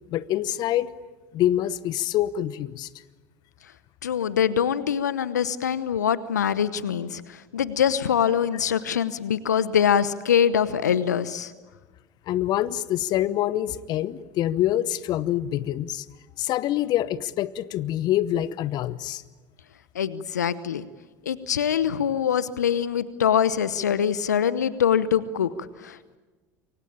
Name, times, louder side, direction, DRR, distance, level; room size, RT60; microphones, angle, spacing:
voice 1, 0.1-0.9 1.3-2.9 12.3-16.0 16.4-19.2, left 12 dB, 50° left, 17 dB, 1.0 m, -25 dB
voice 2, 4.0-11.5 19.9-20.8 21.2-26.2, left 8 dB, 80° left, 16 dB, 0.9 m, -24 dB
28.0 x 24.5 x 8.8 m, 1.3 s
hypercardioid pair, 70°, 9 cm